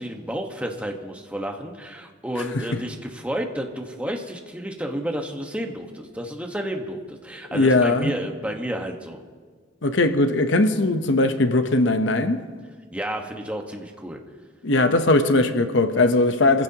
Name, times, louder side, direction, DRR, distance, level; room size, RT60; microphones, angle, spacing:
voice 1, 0.0-9.2 12.9-14.2, equal, 5° right, 1.3 m, -31 dB
voice 2, 7.5-8.1 9.8-12.4 14.6-16.6, left 2 dB, 70° left, 0.9 m, -19 dB
25.5 x 15.0 x 2.9 m
head